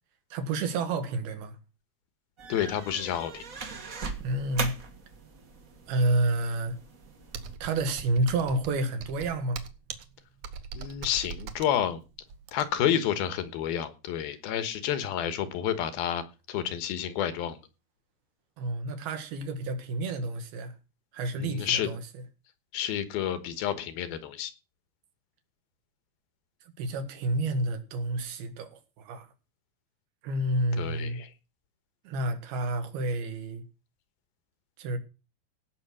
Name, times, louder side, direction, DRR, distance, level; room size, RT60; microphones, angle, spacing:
voice 1, 0.3-1.6 4.2-4.7 5.9-6.8 7.6-9.6 18.6-20.8 21.1-22.0 26.8-29.3 30.2-31.2 32.1-33.6 34.8-35.0, right 2 dB, 80° right, 3.7 m, -29 dB
sound 1, 2.4-7.6, right 4 dB, 45° right, 1.0 m, -40 dB
voice 2, 2.5-3.4 10.7-12.0 12.5-17.6 21.3-21.9 22.7-24.5 30.8-31.3, left 10 dB, 80° left, 3.1 m, -30 dB
Computer keyboard, 7.3-12.9, right 6 dB, 60° right, 1.8 m, -41 dB
17.0 x 6.5 x 6.3 m
omnidirectional pair, 4.3 m